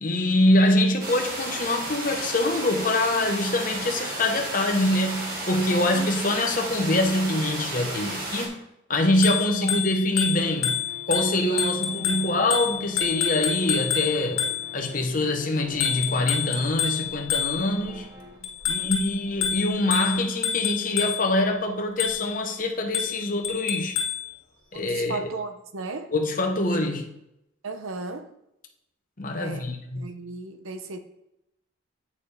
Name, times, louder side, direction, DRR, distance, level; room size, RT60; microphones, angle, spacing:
voice 1, 0.0-8.6 8.9-10.8 11.1-18.1 18.7-24.0 24.7-25.3 26.1-27.1 29.2-30.1, left 1 dB, 40° left, 3 dB, 1.0 m, -24 dB
sound 1, 1.0-8.5, right 2 dB, 45° right, 1.8 m, -33 dB
voice 2, 5.7-6.1 9.6-9.7 11.5-11.6 18.4-18.9 24.7-26.1 27.6-28.4 29.4-29.7 30.0-31.0, right 3 dB, 90° right, 7 dB, 0.8 m, -36 dB
Bicycle bell, 9.1-14.9 15.8-17.9 18.4-21.4 22.0-22.4 22.9-24.3, left 8 dB, 85° left, 1.6 m, -28 dB
sound 2, 10.4-18.4, left 1 dB, 25° right, 1.8 m, -46 dB
8.5 x 6.7 x 3.4 m, 0.83 s
head